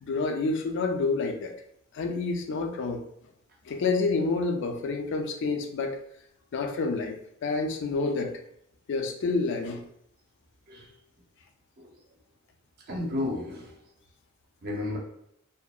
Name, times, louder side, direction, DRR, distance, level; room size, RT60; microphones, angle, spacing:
voice 1, 0.0-1.6 1.9-3.0 3.7-6.0 6.5-8.4 8.9-9.8, left 3 dB, 55° left, 4 dB, 0.3 m, -28 dB
voice 2, 12.9-13.7 14.6-15.0, left 2 dB, 45° right, 0 dB, 0.6 m, -32 dB
2.6 x 2.0 x 2.3 m, 0.75 s
head